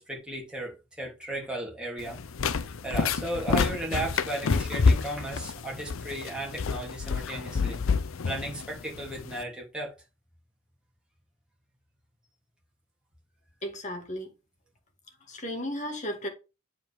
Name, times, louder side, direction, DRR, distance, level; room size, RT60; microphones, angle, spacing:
voice 1, 0.0-2.2 2.5-7.8 8.2-9.9, right 1 dB, 5° right, 3.1 m, -35 dB
sound 1, 2.0-9.4, left 5 dB, 80° left, 0.6 m, -28 dB
voice 2, 13.6-14.3 15.3-16.3, equal, 35° left, 2.2 m, -34 dB
8.9 x 5.0 x 3.6 m
head